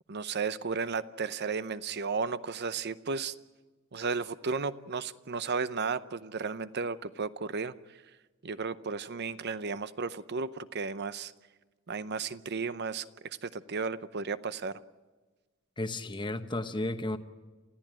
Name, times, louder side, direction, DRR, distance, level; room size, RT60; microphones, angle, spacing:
voice 1, 0.1-3.3 3.9-7.7 8.4-11.3 11.9-14.8, right 5 dB, 55° right, 14 dB, 0.7 m, -34 dB
voice 2, 15.8-17.2, left 2 dB, 25° left, 9 dB, 1.0 m, -33 dB
28.0 x 14.5 x 8.9 m, 1.3 s
head